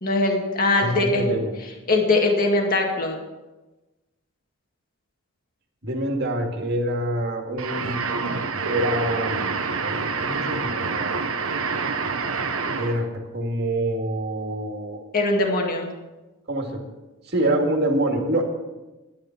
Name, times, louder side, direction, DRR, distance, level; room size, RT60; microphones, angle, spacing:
voice 1, 0.0-1.3 1.9-3.2 15.1-15.9, left 2 dB, 40° left, 1 dB, 2.0 m, -21 dB
voice 2, 0.8-1.5 5.8-7.9 8.6-11.1 12.8-15.0 16.5-16.8 17.3-18.4, right 1 dB, 50° right, 2 dB, 2.1 m, -26 dB
sound 1, 7.6-13.1, right 4 dB, 80° right, 1.1 m, -27 dB
12.0 x 10.0 x 5.9 m, 1.1 s
head